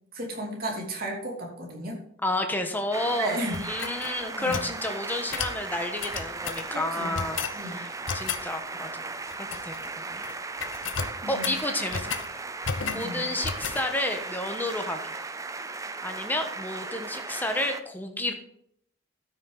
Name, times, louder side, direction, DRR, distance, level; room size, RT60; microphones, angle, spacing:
voice 1, 0.1-2.0 3.1-3.6 4.4-4.6 6.7-7.2 7.5-7.9 11.2-11.5 12.9-13.2, right 1 dB, 50° right, 0 dB, 2.8 m, -34 dB
voice 2, 2.2-7.4 7.6-10.2 11.3-12.1 12.6-15.2 16.0-18.3, left 1 dB, 10° left, 5 dB, 1.2 m, -31 dB
sound 1, 2.9-17.8, right 3 dB, 15° right, 0.5 m, -37 dB
sound 2, 3.5-4.7 5.3-5.6 6.0-6.7 7.1-7.6 8.1-8.5 9.3-9.9 10.1-10.3 10.6-12.3 12.6-13.1 13.4-13.9, left 6 dB, 70° left, 0.8 m, -33 dB
13.0 x 6.5 x 4.0 m, 0.70 s
head